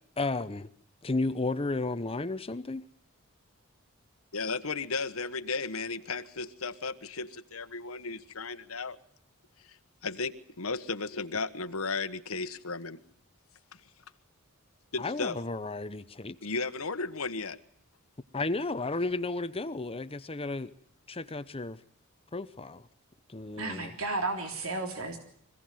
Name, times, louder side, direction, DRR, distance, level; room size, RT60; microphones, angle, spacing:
voice 1, 0.2-0.7 1.0-2.8 15.0-16.4 18.3-20.7 21.1-21.8 22.3-22.9 23.3-23.9, left 3 dB, 25° left, 13 dB, 0.9 m, -33 dB
voice 2, 4.3-9.0 9.6-9.8 10.0-13.0 14.9-15.4 16.4-17.6, left 4 dB, 75° left, 11 dB, 1.5 m, -34 dB
voice 3, 23.6-25.2, right 2 dB, 70° right, 5 dB, 3.6 m, -33 dB
25.5 x 17.0 x 9.4 m, 0.64 s
head